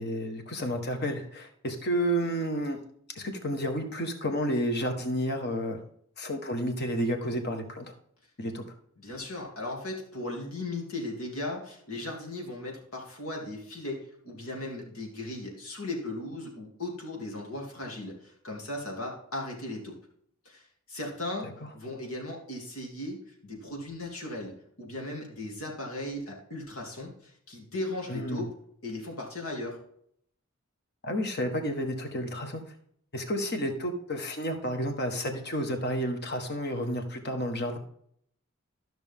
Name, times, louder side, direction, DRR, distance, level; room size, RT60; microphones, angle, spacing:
voice 1, 0.0-2.8 3.1-5.8 6.2-7.9 8.4-8.6 28.1-28.4 31.0-32.6 33.1-37.8, equal, 50° left, 5 dB, 1.4 m, -31 dB
voice 2, 9.0-20.0 20.4-20.6 20.9-21.5 21.7-28.5 28.8-29.8, left 1 dB, 90° left, 0 dB, 2.8 m, -37 dB
13.5 x 6.1 x 3.6 m, 0.67 s
head